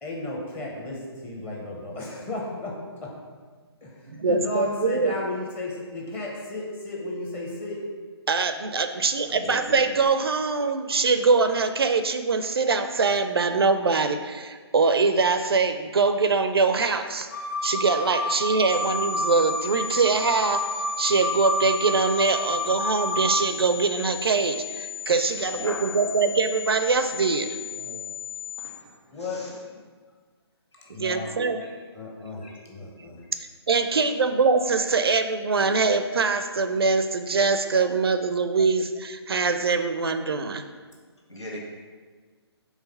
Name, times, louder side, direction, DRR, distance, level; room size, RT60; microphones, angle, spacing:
voice 1, 0.0-3.1 3.8-7.8 29.1-29.8 30.9-33.3, left 2 dB, 15° left, -2 dB, 0.7 m, -34 dB
voice 2, 4.1-5.1 8.3-17.3 17.6-20.6 21.0-27.5 31.0-31.6 33.4-40.6, right 4 dB, 65° right, 9 dB, 0.4 m, -23 dB
voice 3, 9.2-9.8 25.4-25.8 27.7-28.0 28.6-29.6 30.8-30.9 31.2-31.6 41.3-41.6, left 1 dB, 90° left, -4 dB, 1.7 m, -40 dB
sound 1, 17.3-23.3, left 1 dB, 35° left, 1.2 m, -29 dB
sound 2, 18.7-28.7, left 10 dB, 50° left, 1.5 m, -36 dB
4.8 x 3.7 x 5.5 m, 1.5 s
figure-of-eight pair, 140°, 14 cm